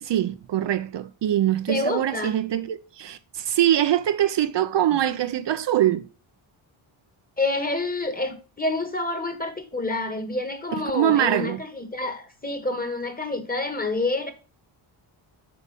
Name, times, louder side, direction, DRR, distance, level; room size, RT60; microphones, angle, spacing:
voice 1, 0.0-6.0 10.9-11.6, right 12 dB, 60° right, 0.6 m, -23 dB
voice 2, 1.7-2.4 7.4-14.3, left 2 dB, 15° left, 1.5 m, -28 dB
8.4 x 4.9 x 5.3 m
cardioid pair, 95°, 50 cm